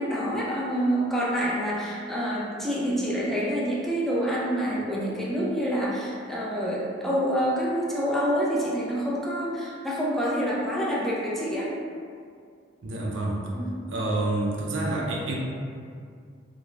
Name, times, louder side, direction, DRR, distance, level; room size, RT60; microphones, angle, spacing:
voice 1, 0.0-11.7 13.5-13.7, equal, ahead, -6 dB, 0.3 m, -27 dB
voice 2, 12.8-13.4 13.9-15.4, right 2 dB, 75° right, -2 dB, 0.5 m, -28 dB
3.1 x 2.0 x 2.4 m, 2.2 s
head